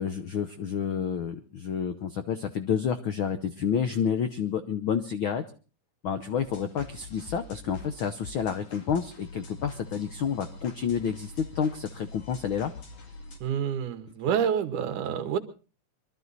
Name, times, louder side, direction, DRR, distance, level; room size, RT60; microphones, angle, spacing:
voice 1, 0.0-5.4 6.0-12.7, left 7 dB, 85° left, 9 dB, 1.1 m, -29 dB
sound 1, 6.4-13.4, left 2 dB, 55° left, 3.5 m, -45 dB
voice 2, 13.4-15.4, right 8 dB, 80° right, 9 dB, 2.7 m, -28 dB
24.0 x 12.5 x 4.0 m, 0.35 s
omnidirectional pair, 3.6 m